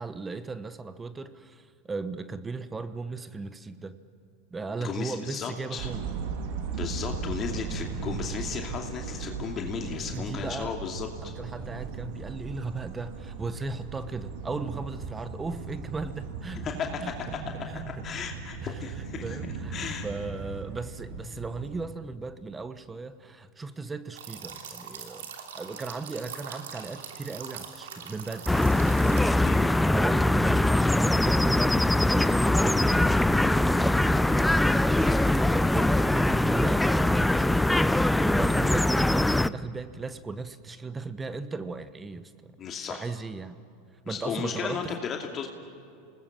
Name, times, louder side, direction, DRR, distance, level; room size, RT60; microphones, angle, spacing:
voice 1, 0.0-4.0 4.5-6.1 10.1-10.8 11.2-16.7 17.0-17.1 17.7-18.0 18.6-18.8 19.2-25.3 25.5-28.7 29.0-29.4 29.7-35.0 35.7-43.6 44.1-44.9, right 4 dB, 15° right, 13 dB, 1.1 m, -37 dB
voice 2, 4.8-5.9 6.7-11.1 16.6-17.7 18.0-19.4 19.7-20.1 29.4-29.7 35.0-35.3 35.8-35.9 42.6-43.0 44.1-45.5, left 6 dB, 35° left, 2 dB, 2.5 m, -35 dB
sound 1, 5.8-21.8, right 5 dB, 65° right, 2.7 m, -37 dB
sound 2, 24.2-29.6, right 7 dB, 80° right, 3.1 m, -42 dB
sound 3, 28.5-39.5, left 1 dB, 5° left, 0.6 m, -22 dB
28.0 x 20.0 x 7.5 m, 2.5 s
hypercardioid pair, 100°, 0 cm